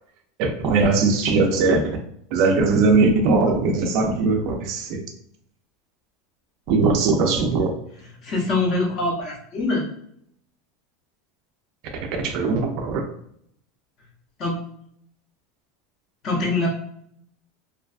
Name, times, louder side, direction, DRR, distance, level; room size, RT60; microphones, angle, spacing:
voice 1, 0.4-2.0 2.3-5.0 6.7-7.8 12.2-13.1, right 3 dB, 45° right, 4 dB, 0.3 m, -20 dB
voice 2, 8.2-9.8 14.4-14.6 16.2-16.7, left 2 dB, 30° left, -1 dB, 0.6 m, -23 dB
2.3 x 2.2 x 2.3 m, 0.70 s
supercardioid pair, 175°, 0 cm